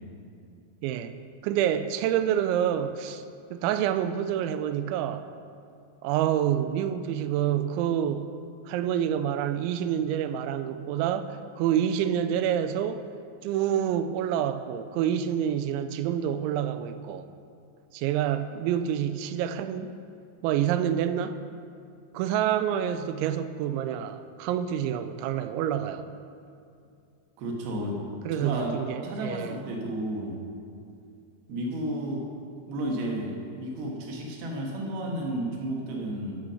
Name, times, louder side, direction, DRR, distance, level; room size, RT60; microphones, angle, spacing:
voice 1, 0.8-1.1 1.4-3.2 3.5-5.3 6.0-8.3 8.7-13.0 13.4-17.3 17.9-19.9 20.4-21.4 22.1-26.1 28.3-29.6, right 10 dB, 90° right, 11 dB, 3.0 m, -27 dB
voice 2, 27.4-28.0 28.3-28.7 29.0-30.3 31.5-32.2 32.7-36.4, right 1 dB, 65° right, -1 dB, 3.3 m, -32 dB
14.5 x 6.3 x 6.4 m, 2.5 s
omnidirectional pair, 5.2 m